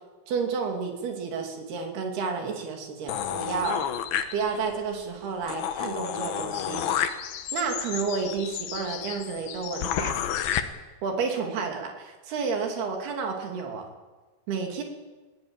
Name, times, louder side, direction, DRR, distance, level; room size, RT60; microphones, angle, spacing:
voice 1, 0.3-3.9 4.3-6.8 7.5-10.2 11.0-13.9 14.5-14.8, right 5 dB, 70° right, 3 dB, 4.6 m, -31 dB
sound 1, 3.1-4.8 5.2-5.3 5.5-10.6, left 10 dB, 70° left, 2.9 m, -31 dB
21.5 x 17.5 x 8.9 m, 1.3 s
omnidirectional pair, 4.7 m